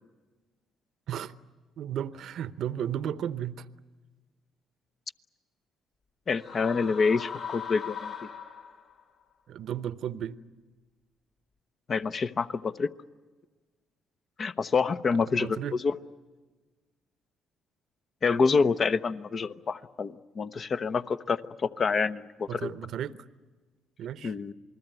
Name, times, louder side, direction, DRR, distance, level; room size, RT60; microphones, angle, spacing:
voice 1, 1.8-3.7 9.5-10.4 15.4-15.8 22.5-23.2 24.0-24.3, right 10 dB, 65° right, 0.8 m, -34 dB
voice 2, 6.3-8.1 11.9-12.9 14.4-16.0 18.2-22.7 24.2-24.5, left 5 dB, 45° left, 0.9 m, -27 dB
sound 1, 6.4-9.0, left 7 dB, 60° left, 3.1 m, -39 dB
28.0 x 20.0 x 9.1 m
supercardioid pair, 65°, 0 cm